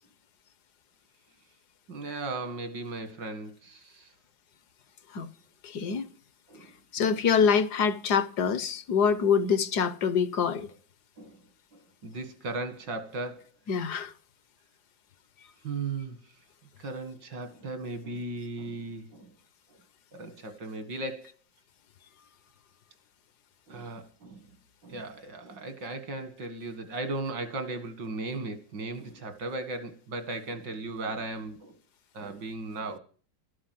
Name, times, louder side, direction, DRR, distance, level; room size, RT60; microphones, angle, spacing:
voice 1, 1.9-4.1 6.5-6.7 7.0-7.2 11.2-11.4 11.7-13.5 15.6-16.2 16.8-19.3 20.1-21.3 23.7-24.4 24.8-31.8 32.1-33.0, right 2 dB, 80° right, 2.6 m, -37 dB
voice 2, 5.6-6.1 6.9-10.7 13.7-14.1, left 6 dB, 65° left, 1.4 m, -25 dB
13.0 x 11.0 x 7.7 m
omnidirectional pair, 1.9 m